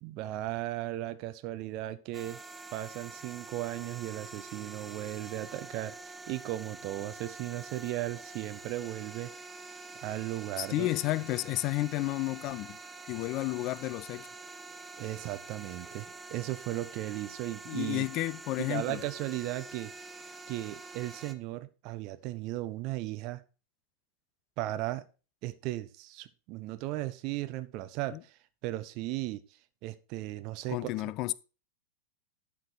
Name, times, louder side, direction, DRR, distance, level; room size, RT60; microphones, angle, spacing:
voice 1, 0.0-2.4 2.7-9.3 10.0-10.9 15.0-18.1 18.6-19.9 20.5-23.4 24.6-25.0 25.4-29.4 29.8-30.9, right 16 dB, 40° right, 0.8 m, -36 dB
sound 1, 2.1-21.3, right 3 dB, 10° right, 0.7 m, -46 dB
voice 2, 10.6-12.8 13.1-14.3 17.7-19.0 28.1-28.2 30.7-31.3, left 17 dB, 40° left, 0.4 m, -32 dB
11.5 x 4.6 x 4.5 m
figure-of-eight pair, 90°, 0 cm